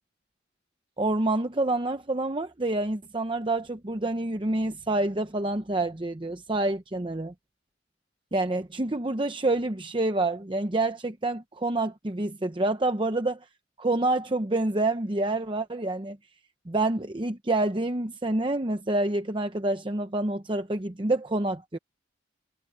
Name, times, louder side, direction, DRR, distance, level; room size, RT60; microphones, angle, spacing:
voice 1, 1.0-7.3 8.3-13.4 13.8-16.2 16.7-21.8, right 2 dB, 25° right, 0.8 m, -27 dB
head